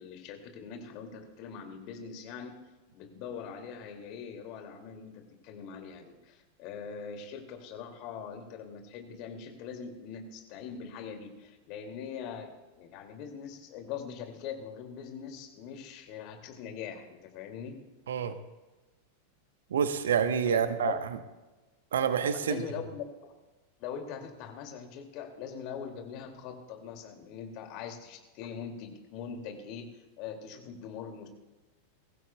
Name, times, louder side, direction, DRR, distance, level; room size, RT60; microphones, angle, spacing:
voice 1, 0.0-2.6 2.9-12.5 12.8-17.8 20.5-21.0 22.3-23.3 23.8-31.3, left 7 dB, 40° left, 4 dB, 2.4 m, -42 dB
voice 2, 19.7-21.0 21.9-22.6, right 7 dB, 65° right, 10 dB, 1.0 m, -27 dB
22.5 x 15.5 x 2.3 m, 1.1 s
figure-of-eight pair, 90°, 0 cm